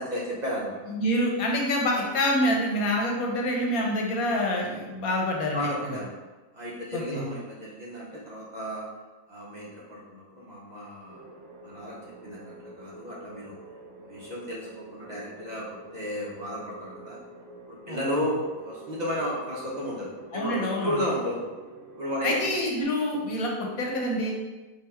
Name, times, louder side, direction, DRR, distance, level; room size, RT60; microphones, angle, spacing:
voice 1, 0.0-0.8 5.5-6.1 6.5-8.9 9.3-11.2 11.6-13.6 14.0-17.2 17.7-21.4 21.9-22.4, equal, 40° right, -5 dB, 0.7 m, -33 dB
voice 2, 0.9-6.0 6.9-7.2 17.9-18.2 20.3-21.0 22.2-24.3, left 1 dB, 85° left, -1 dB, 1.3 m, -27 dB
sound 1, 11.1-22.8, right 3 dB, 60° right, 0.9 m, -47 dB
3.8 x 2.7 x 4.3 m, 1.2 s
omnidirectional pair, 1.5 m